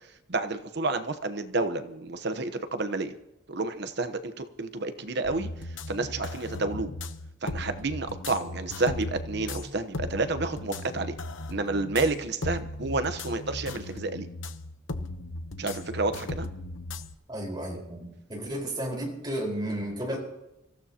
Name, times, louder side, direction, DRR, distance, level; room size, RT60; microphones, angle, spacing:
voice 1, 0.3-3.1 3.5-5.5 5.9-6.9 7.4-11.2 11.5-14.3 15.6-16.5, right 3 dB, 55° right, 10 dB, 1.0 m, -30 dB
sound 1, 5.2-17.2, left 2 dB, 70° left, 0.9 m, -37 dB
voice 2, 17.3-20.2, right 1 dB, 20° right, -1 dB, 4.7 m, -33 dB
25.0 x 15.5 x 2.9 m, 0.90 s
head